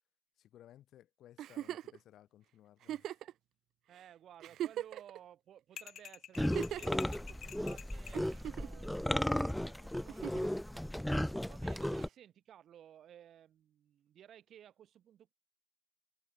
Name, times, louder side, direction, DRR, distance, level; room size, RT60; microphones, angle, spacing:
voice 1, 0.4-3.2, left 12 dB, 90° left, 1.9 m, -60 dB
Giggle, 1.4-2.0 2.8-3.3 4.0-4.1 4.4-5.2 6.3-7.0 8.1-8.8 10.1-10.5 12.0-12.1, right 12 dB, 85° right, 0.3 m, -40 dB
voice 2, 3.9-10.5 11.5-15.3, right 10 dB, 65° right, 4.4 m, -57 dB
sound 1, 5.8-8.2, left 10 dB, 65° left, 0.9 m, -50 dB
sound 2, 6.4-12.1, left 1 dB, 5° left, 0.3 m, -35 dB
cardioid pair, 165°, 0 cm